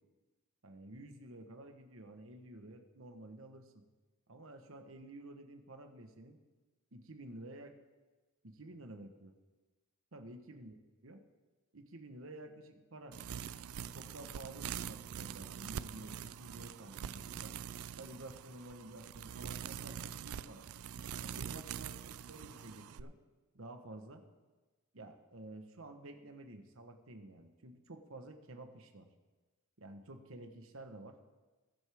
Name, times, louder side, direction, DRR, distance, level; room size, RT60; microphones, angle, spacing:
voice 1, 0.6-3.8 4.3-6.4 6.9-7.8 8.4-9.4 10.1-10.8 11.0-11.2 11.7-13.2 13.8-17.5 18.0-20.7 21.2-23.2 23.5-24.2 24.9-29.1 29.8-31.2, right 1 dB, 65° right, 6 dB, 1.2 m, -51 dB
sound 1, 13.1-23.0, right 8 dB, 85° right, 0.4 m, -44 dB
20.5 x 8.0 x 3.6 m, 1.2 s
head